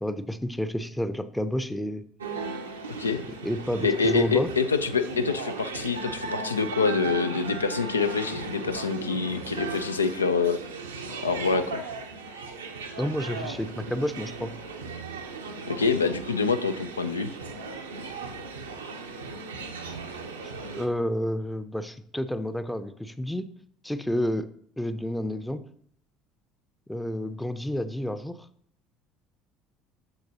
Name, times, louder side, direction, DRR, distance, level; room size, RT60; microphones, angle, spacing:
voice 1, 0.0-2.0 3.4-4.5 13.0-14.5 20.4-23.5 23.8-24.5 24.8-25.6 26.9-28.5, equal, 5° left, 11 dB, 0.6 m, -30 dB
sound 1, 2.2-20.9, right 3 dB, 80° right, 0.6 m, -37 dB
voice 2, 3.8-10.6 11.2-11.8 15.7-17.3, left 5 dB, 85° left, 10 dB, 0.3 m, -26 dB
7.9 x 6.6 x 2.8 m, 0.63 s
figure-of-eight pair, 60°, 0 cm